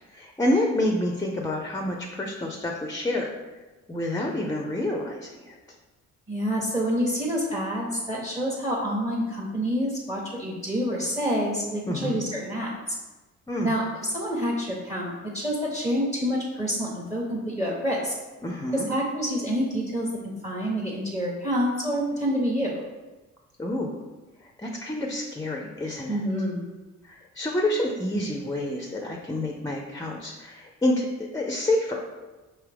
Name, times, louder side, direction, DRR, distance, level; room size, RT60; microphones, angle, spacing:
voice 1, 0.1-3.3 3.9-5.6 11.9-12.2 13.5-13.7 18.4-18.9 23.6-24.0 24.6-26.2 27.0-32.0, left 1 dB, 10° left, 0 dB, 0.5 m, -28 dB
voice 2, 6.3-12.8 13.6-13.8 14.1-18.1 18.7-20.1 20.4-22.8 26.1-26.6, equal, 10° right, -3 dB, 0.8 m, -27 dB
4.8 x 3.0 x 3.3 m, 1.2 s
cardioid pair, 90°, 30 cm